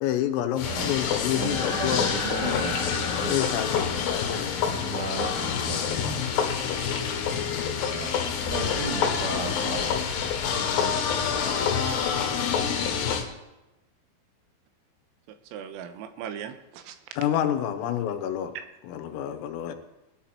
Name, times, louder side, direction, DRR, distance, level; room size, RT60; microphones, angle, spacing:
voice 1, 0.0-2.1 2.4-2.9 3.3-5.0 17.2-18.5 18.8-19.7, left 11 dB, 85° left, 8 dB, 3.6 m, -29 dB
sound 1, 0.6-13.2, left 7 dB, 65° left, 3.2 m, -27 dB
sound 2, 1.3-5.0, left 1 dB, 15° right, 3.1 m, -36 dB
voice 2, 1.3-3.4 4.9-6.0 7.9-8.1 8.5-9.9 10.8-11.3, right 3 dB, 50° right, 0 dB, 2.8 m, -35 dB
voice 3, 15.3-17.0 18.6-18.7, right 8 dB, 85° right, 8 dB, 3.7 m, -39 dB
21.0 x 12.0 x 4.4 m, 0.98 s
omnidirectional pair, 6.0 m